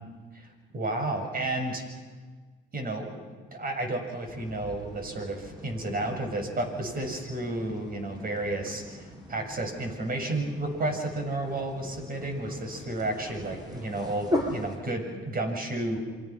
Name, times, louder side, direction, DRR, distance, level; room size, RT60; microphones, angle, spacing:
voice 1, 0.3-1.8 2.7-3.3 3.5-16.0, right 2 dB, 45° right, 5 dB, 7.1 m, -32 dB
sound 1, 4.3-14.8, left 1 dB, 20° right, 7.4 m, -39 dB
28.5 x 24.5 x 6.1 m, 1.5 s
cardioid pair, 90°, 20 cm